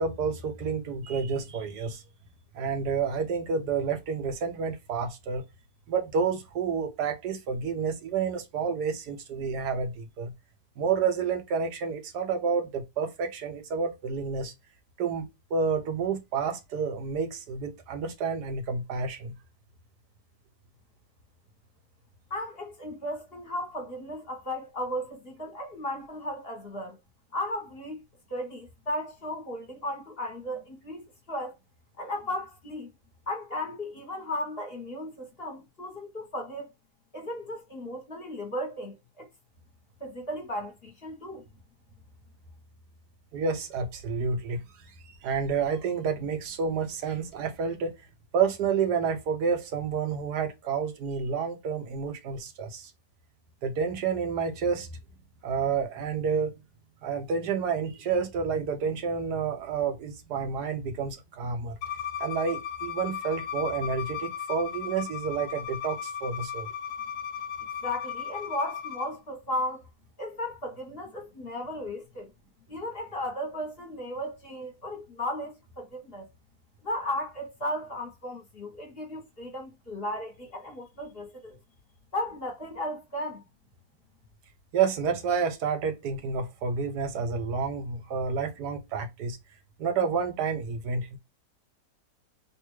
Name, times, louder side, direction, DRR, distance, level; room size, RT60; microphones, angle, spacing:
voice 1, 0.0-2.0 2.5-5.4 5.9-10.3 10.8-14.5 15.0-19.3 43.3-44.6 45.1-47.9 48.3-52.9 53.6-54.9 55.4-56.5 57.0-61.7 62.2-66.7 84.7-89.4 89.8-91.2, right 5 dB, 75° right, 1.3 m, -29 dB
voice 2, 22.3-27.0 27.3-28.0 28.3-31.5 32.0-32.9 33.3-36.7 37.1-39.3 40.0-41.4 67.8-69.8 70.2-72.3 72.7-76.3 76.8-81.6 82.1-83.4, left 1 dB, 40° left, 1.1 m, -35 dB
Bowed string instrument, 61.8-69.1, left 8 dB, 75° left, 1.0 m, -36 dB
3.4 x 2.5 x 3.0 m
omnidirectional pair, 1.8 m